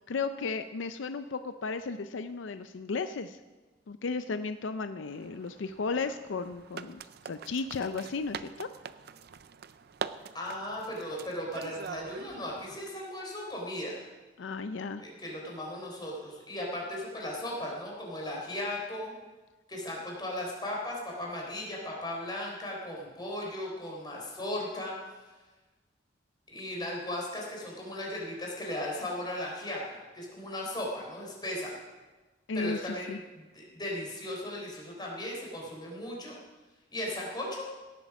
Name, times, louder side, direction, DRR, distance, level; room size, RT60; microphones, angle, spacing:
voice 1, 0.1-3.4 3.9-7.0 7.3-8.7 14.4-15.0 32.5-33.2, left 4 dB, 80° left, 10 dB, 0.5 m, -34 dB
sound 1, 5.1-12.9, right 6 dB, 55° right, 0.5 m, -44 dB
voice 2, 10.3-14.0 15.0-19.1 19.7-24.9 26.5-31.7 32.5-36.4 36.9-37.7, left 1 dB, 25° left, -2 dB, 3.8 m, -37 dB
17.5 x 8.4 x 6.0 m, 1.2 s
head